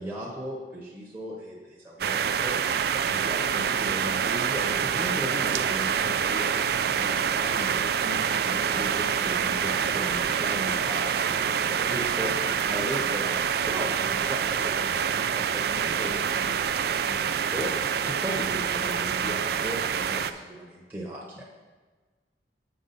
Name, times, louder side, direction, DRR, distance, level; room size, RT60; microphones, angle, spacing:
voice 1, 0.0-2.5 3.1-6.5 6.9-13.4 13.7-21.4, equal, 10° right, -5 dB, 0.9 m, -37 dB
sound 1, 2.0-20.3, right 7 dB, 60° right, 0.3 m, -26 dB
7.8 x 6.0 x 4.1 m, 1.3 s
head